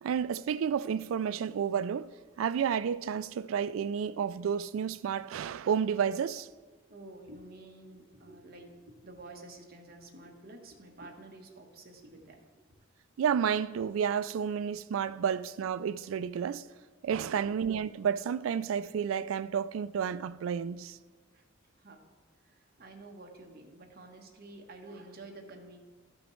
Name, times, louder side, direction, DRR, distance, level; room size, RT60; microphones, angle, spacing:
voice 1, 0.0-2.1 2.4-6.5 13.2-16.6 17.0-21.0, right 7 dB, 80° right, 0.3 m, -31 dB
voice 2, 6.9-12.4 17.2-17.6 21.3-21.4 21.8-22.1 22.4-25.8, right 2 dB, 50° right, 1.2 m, -50 dB
13.0 x 6.1 x 3.2 m
head